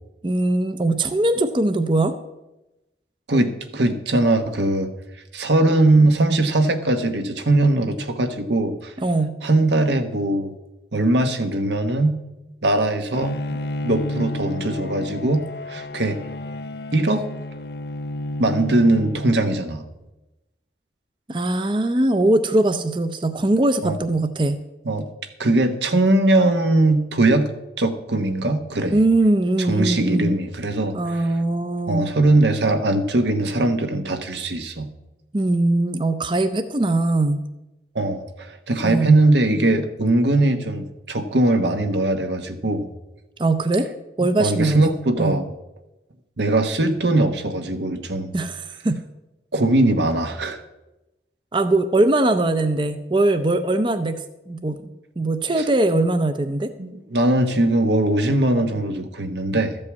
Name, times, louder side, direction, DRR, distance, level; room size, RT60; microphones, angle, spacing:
voice 1, 0.2-2.2 9.0-9.4 21.3-24.6 28.9-30.4 30.9-32.1 35.3-37.4 38.8-39.2 43.4-43.9 44.2-44.9 45.2-45.4 48.3-49.0 51.5-56.7, right 2 dB, 25° right, 9 dB, 0.5 m, -21 dB
voice 2, 3.3-4.9 5.3-8.9 9.4-10.5 10.9-12.2 12.6-15.4 15.7-16.2 16.9-17.2 18.4-19.9 23.8-24.0 24.8-25.1 25.4-27.5 27.8-29.0 29.7-31.2 31.9-34.9 37.9-42.9 44.4-45.5 46.4-48.3 49.5-50.6 56.8-59.8, right 2 dB, 85° right, 7 dB, 1.2 m, -20 dB
Bowed string instrument, 13.1-19.8, left 1 dB, 65° left, 0.5 m, -31 dB
13.5 x 5.4 x 8.2 m, 0.99 s
head